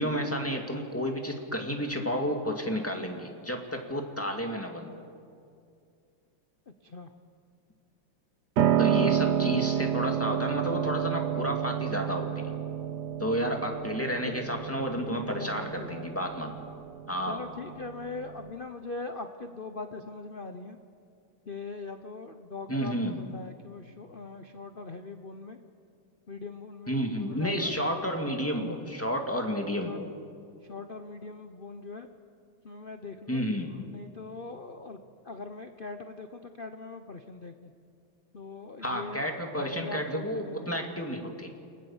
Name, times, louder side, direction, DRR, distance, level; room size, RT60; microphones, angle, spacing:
voice 1, 0.0-5.1 8.8-12.6 13.2-16.6 17.1-17.4 22.7-23.2 26.9-30.0 33.3-33.8 38.8-41.5, equal, 5° left, 2 dB, 1.9 m, -31 dB
voice 2, 6.7-7.1 14.2-14.7 15.0-16.1 17.2-20.8 21.4-25.6 26.3-27.7 29.8-30.0 30.6-32.1 32.6-33.5 33.9-35.0 35.2-37.7 38.3-39.3 39.5-40.7, left 3 dB, 70° left, 7 dB, 0.5 m, -41 dB
Piano, 8.6-18.5, right 9 dB, 60° right, 1.2 m, -30 dB
29.0 x 19.0 x 7.2 m, 2.4 s
omnidirectional pair, 2.4 m